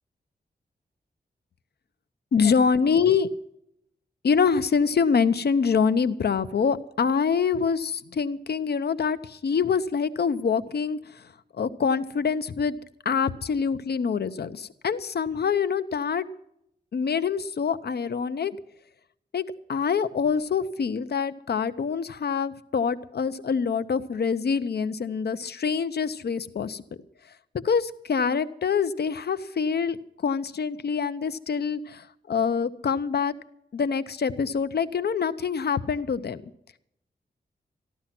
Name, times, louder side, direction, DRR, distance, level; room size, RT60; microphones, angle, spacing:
voice 1, 2.3-3.3 4.2-11.3 11.5-12.8 13.0-16.3 16.9-18.6 19.3-26.8 27.6-30.0 30.2-33.3 33.7-36.4, left 6 dB, 70° left, 13 dB, 0.8 m, -25 dB
15.0 x 12.0 x 6.0 m, 0.75 s
wide cardioid pair, 105°, 17 cm